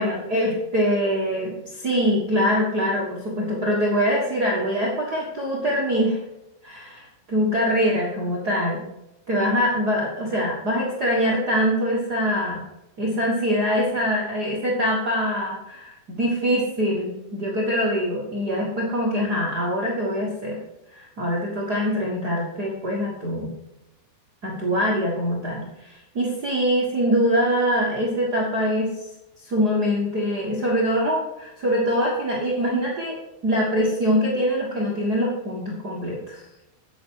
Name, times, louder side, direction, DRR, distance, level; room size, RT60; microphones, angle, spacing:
voice 1, 0.0-6.2 6.6-8.8 9.3-12.6 13.0-20.6 20.9-23.5 24.4-29.0 29.4-33.2 33.4-36.4, equal, 75° right, -4 dB, 0.9 m, -24 dB
9.0 x 8.7 x 4.7 m, 0.90 s
omnidirectional pair, 4.6 m